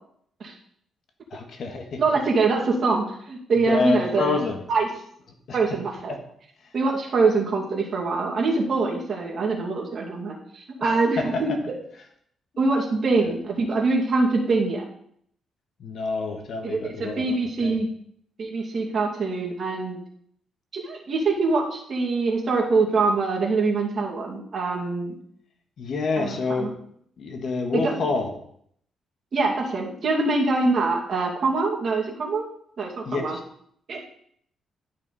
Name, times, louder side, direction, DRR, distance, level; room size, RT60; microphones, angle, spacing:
voice 1, 1.3-2.0 3.7-4.6 5.5-5.6 6.1-6.2 10.8-11.4 15.8-17.3 17.6-17.8 25.8-26.7 27.2-28.3 33.0-33.4, left 4 dB, 55° left, 4 dB, 1.5 m, -27 dB
voice 2, 2.0-4.4 4.7-4.9 5.5-6.1 6.7-11.8 12.6-14.8 16.6-17.9 18.4-20.0 20.7-25.2 26.2-26.7 27.7-28.0 29.3-32.4 32.8-33.4 33.9-34.0, right 3 dB, 45° right, -2 dB, 2.5 m, -24 dB
12.0 x 5.6 x 4.1 m, 0.66 s
cardioid pair, 125°, 0 cm